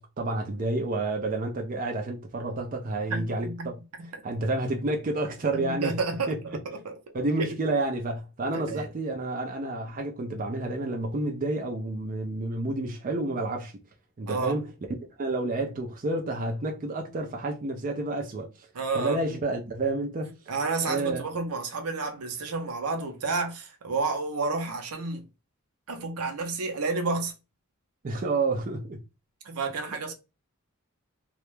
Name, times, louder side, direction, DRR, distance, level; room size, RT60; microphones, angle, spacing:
voice 1, 0.0-3.8 4.2-6.0 6.3-6.4 7.1-13.7 14.2-14.7 15.2-18.7 18.9-20.3 20.9-21.2 28.0-29.0, right 2 dB, 35° right, 0.4 m, -29 dB
voice 2, 3.1-3.7 4.0-4.2 5.5-6.9 7.4-7.5 8.5-8.9 14.2-14.6 18.7-19.2 20.5-25.3 25.9-27.3 29.4-30.1, right 3 dB, 80° right, 0.6 m, -31 dB
2.3 x 2.1 x 3.0 m
head